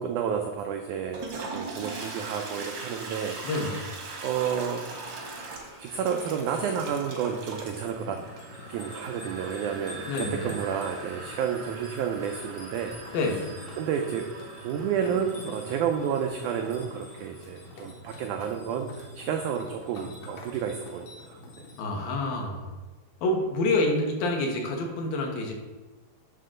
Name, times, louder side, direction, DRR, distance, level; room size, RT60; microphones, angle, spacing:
voice 1, 0.0-3.3 4.2-5.0 5.8-8.2 8.7-12.9 13.8-14.3 14.6-21.4, right 7 dB, 90° right, 3 dB, 1.7 m, -30 dB
Toilet flush, 1.0-17.7, right 3 dB, 60° right, 1.2 m, -41 dB
voice 2, 3.4-3.8 10.1-10.5 13.1-13.4 21.8-22.7 23.2-25.5, left 2 dB, 75° left, 1 dB, 2.9 m, -27 dB
sound 1, 6.3-21.8, left 2 dB, 60° left, 1.8 m, -46 dB
8.8 x 3.7 x 6.4 m, 1.2 s
omnidirectional pair, 4.2 m